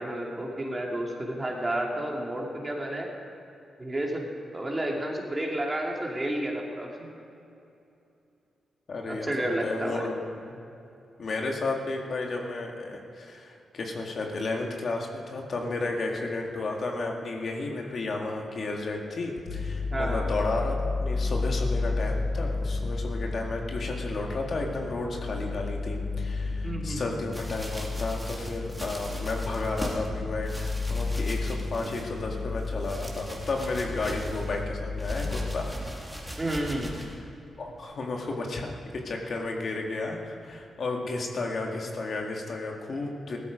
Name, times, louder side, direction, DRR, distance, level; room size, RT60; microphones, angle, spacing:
voice 1, 0.0-3.1 3.8-4.3 4.5-7.1 9.1-10.1 19.9-20.3 26.6-27.0 36.4-36.9, right 1 dB, 20° right, -1 dB, 2.6 m, -31 dB
voice 2, 8.9-9.3 9.6-10.1 10.4-10.6 11.2-35.7 37.6-38.7 39.0-43.4, left 3 dB, 55° left, 1 dB, 2.0 m, -32 dB
sound 1, 19.5-35.7, left 3 dB, 80° left, 1.0 m, -32 dB
sound 2, 27.3-30.1 30.4-32.3 32.6-34.6 35.0-37.2 37.8-37.9, equal, 5° right, 2.5 m, -40 dB
16.0 x 13.0 x 5.2 m, 2.8 s
cardioid pair, 85°, 0 cm